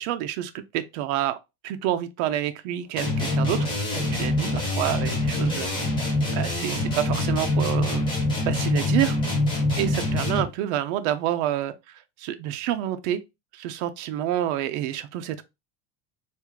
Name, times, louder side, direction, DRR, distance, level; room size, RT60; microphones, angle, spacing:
voice 1, 0.0-1.4 1.6-5.7 6.3-8.1 8.4-9.2 9.8-13.2 13.5-15.4, right 12 dB, 55° right, 0.5 m, -28 dB
sound 1, 3.0-10.6, left 2 dB, 10° left, 0.5 m, -25 dB
3.5 x 2.5 x 3.1 m
cardioid pair, 175°, 43 cm